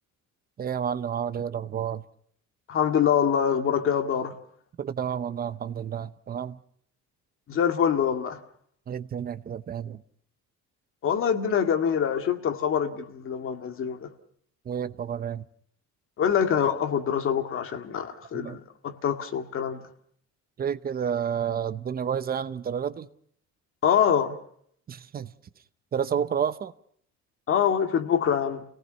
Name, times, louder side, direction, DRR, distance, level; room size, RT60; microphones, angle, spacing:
voice 1, 0.6-2.0 4.8-6.6 8.9-10.0 14.6-15.4 18.3-18.6 20.6-23.1 24.9-25.3 25.9-26.7, right 8 dB, 30° right, 0.8 m, -30 dB
voice 2, 2.7-4.4 7.5-8.4 11.0-14.1 16.2-19.8 23.8-24.4 27.5-28.6, left 8 dB, 40° left, 2.0 m, -25 dB
29.5 x 18.5 x 5.4 m
cardioid pair, 165°, 31 cm